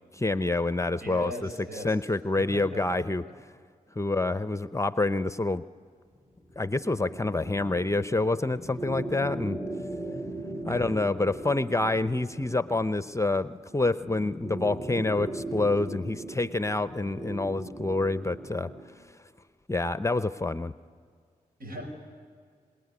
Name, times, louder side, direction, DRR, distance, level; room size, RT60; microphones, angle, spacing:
voice 1, 0.1-1.3 1.8-3.2 4.0-5.6 6.6-9.6 10.6-18.7 19.7-20.7, left 2 dB, 20° left, 14 dB, 0.7 m, -27 dB
voice 2, 1.0-2.2 2.5-3.3 10.7-10.9 21.6-21.9, equal, 70° right, 4 dB, 5.7 m, -40 dB
sound 1, 6.5-18.9, right 2 dB, 10° right, 2.3 m, -39 dB
26.5 x 19.0 x 9.7 m, 2.1 s
supercardioid pair, 40°, 16 cm